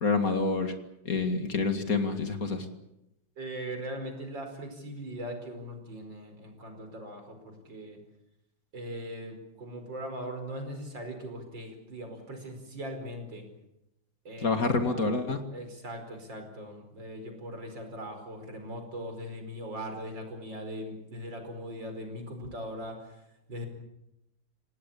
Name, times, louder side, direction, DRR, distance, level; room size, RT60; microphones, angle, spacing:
voice 1, 0.0-0.7 1.1-2.7 14.4-15.4, left 3 dB, 50° left, 7 dB, 2.5 m, -27 dB
voice 2, 3.4-8.0 8.7-13.4 14.3-15.0 15.5-23.2 23.5-23.7, equal, 75° right, 5 dB, 5.6 m, -40 dB
27.5 x 18.0 x 8.6 m, 0.85 s
omnidirectional pair, 2.0 m